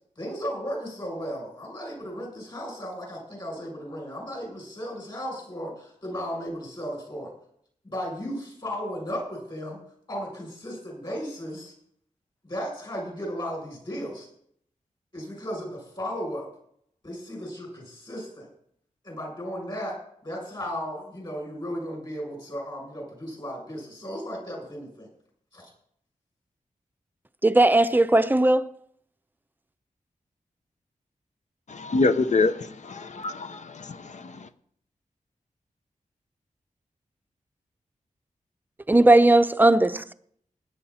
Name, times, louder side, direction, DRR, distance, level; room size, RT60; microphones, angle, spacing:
voice 1, 0.2-7.3 7.8-9.8 10.1-11.7 12.4-14.3 15.1-16.5 17.0-18.5 19.0-20.0 20.2-25.1 25.5-25.7, equal, 35° left, 7.7 m, -35 dB
voice 2, 27.4-28.7 38.9-40.1, right 2 dB, 15° right, 0.6 m, -18 dB
voice 3, 31.7-34.5, left 3 dB, 60° left, 0.8 m, -26 dB
18.0 x 10.0 x 4.3 m
wide cardioid pair, 100°, 14 cm